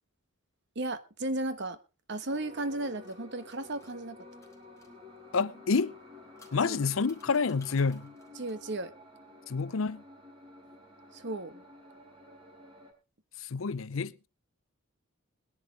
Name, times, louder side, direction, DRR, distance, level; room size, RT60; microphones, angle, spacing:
voice 1, 0.7-1.8 2.1-4.2 6.7-6.8 8.3-8.9 11.1-11.6, right 2 dB, 55° right, 1.2 m, -35 dB
sound 1, 2.3-12.9, left 2 dB, 25° right, 4.2 m, -52 dB
sound 2, 2.8-4.9 5.9-8.7, left 4 dB, 15° left, 3.1 m, -60 dB
voice 2, 5.3-5.9 6.5-8.1 9.5-10.0 13.4-14.3, left 4 dB, 65° left, 0.6 m, -28 dB
20.5 x 11.0 x 3.2 m
head